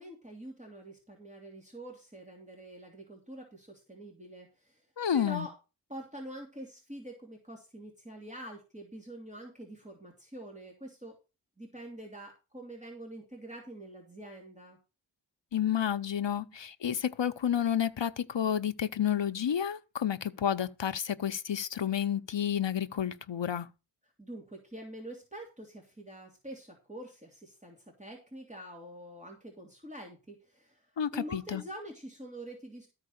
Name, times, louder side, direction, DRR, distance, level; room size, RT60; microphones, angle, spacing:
voice 1, 0.0-4.8 5.1-5.6 5.9-11.2 11.6-14.8 16.4-16.5 24.2-32.9, right 1 dB, 15° right, 3.1 m, -45 dB
voice 2, 5.0-5.5 15.5-23.7 31.0-31.6, left 9 dB, 75° left, 0.8 m, -30 dB
13.5 x 4.8 x 6.4 m
wide cardioid pair, 50°, 44 cm